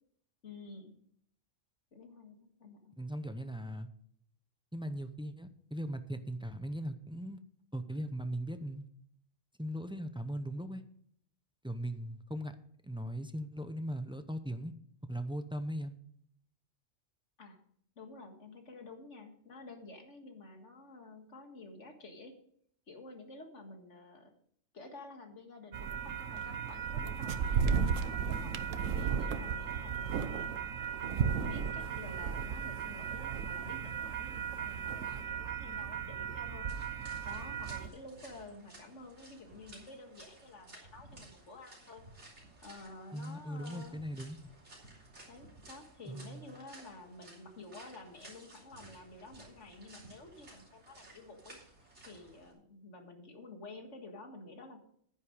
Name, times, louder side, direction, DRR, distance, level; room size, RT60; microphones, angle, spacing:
voice 1, 0.4-0.9 1.9-2.9 17.4-17.6 18.0-22.3 22.9-24.3 24.7-28.5 29.0-30.6 31.0-36.7 37.3-42.0 42.6-44.0 45.3-51.6 52.0-54.8, left 2 dB, 70° left, 4 dB, 2.1 m, -51 dB
voice 2, 3.0-3.9 4.7-7.4 7.7-8.9 9.6-10.8 11.6-12.6 12.8-14.7 15.1-15.9 43.1-44.4 46.1-46.4, equal, 5° right, 9 dB, 0.5 m, -39 dB
sound 1, 25.7-37.9, right 7 dB, 90° right, 1.2 m, -35 dB
sound 2, 36.7-52.5, right 2 dB, 60° right, 3.7 m, -56 dB
10.0 x 9.9 x 5.0 m, 0.66 s
omnidirectional pair, 1.3 m